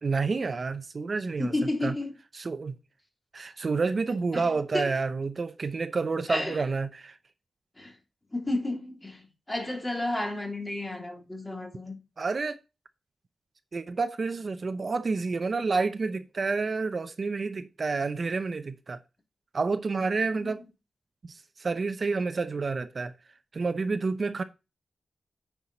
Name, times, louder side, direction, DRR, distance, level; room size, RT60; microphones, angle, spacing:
voice 1, 0.0-1.5 1.8-1.9 2.3-2.8 3.3-7.2 12.2-12.6 13.7-19.0 19.5-20.6 21.3-23.1 23.5-24.4, right 4 dB, 55° right, 0.7 m, -29 dB
voice 2, 1.4-2.1 4.3-4.5 4.7-4.9 6.3-6.6 7.8-7.9 8.3-12.0 20.4-20.5, left 1 dB, 25° left, 3.2 m, -31 dB
9.5 x 4.7 x 4.1 m
cardioid pair, 60°, 0 cm